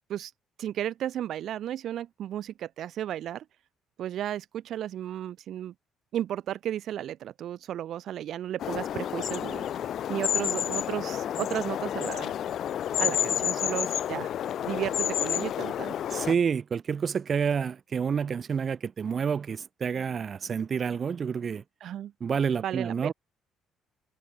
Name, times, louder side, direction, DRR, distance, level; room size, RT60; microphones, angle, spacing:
voice 1, 0.6-3.4 4.0-5.7 6.1-12.3 13.0-14.3 14.7-16.0 21.8-22.1 22.6-23.1, right 11 dB, 60° right, 3.8 m, -34 dB
sound 1, 8.6-16.3, left 10 dB, 60° left, 3.1 m, -30 dB
voice 2, 16.1-21.6 22.2-23.1, right 6 dB, 40° right, 5.5 m, -29 dB
cardioid pair, 120°, 0 cm